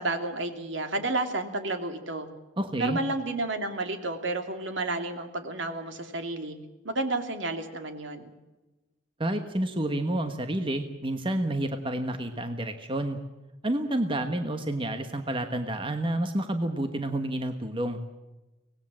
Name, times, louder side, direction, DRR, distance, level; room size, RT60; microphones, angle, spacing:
voice 1, 0.0-2.3 2.8-6.6 6.8-8.3, right 2 dB, 65° right, 6 dB, 2.7 m, -31 dB
voice 2, 2.6-3.0 9.2-13.2 13.6-18.0, right 1 dB, 25° right, 6 dB, 1.3 m, -29 dB
25.0 x 19.0 x 7.5 m, 1.1 s
head